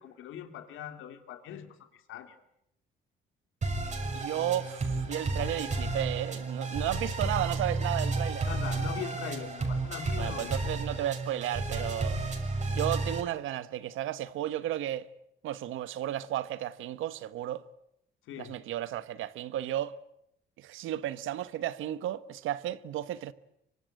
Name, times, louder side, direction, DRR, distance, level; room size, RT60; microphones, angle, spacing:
voice 1, 0.0-2.3 8.4-10.6 18.3-18.6, left 9 dB, 85° left, 2.9 m, -41 dB
sound 1, 3.6-13.2, right 3 dB, 35° right, 6.2 m, -32 dB
voice 2, 4.1-8.5 10.2-12.2 12.7-15.1 15.4-17.6 18.4-19.9 20.6-23.3, right 12 dB, 85° right, 1.3 m, -33 dB
25.5 x 24.0 x 9.1 m
cardioid pair, 90°, 20 cm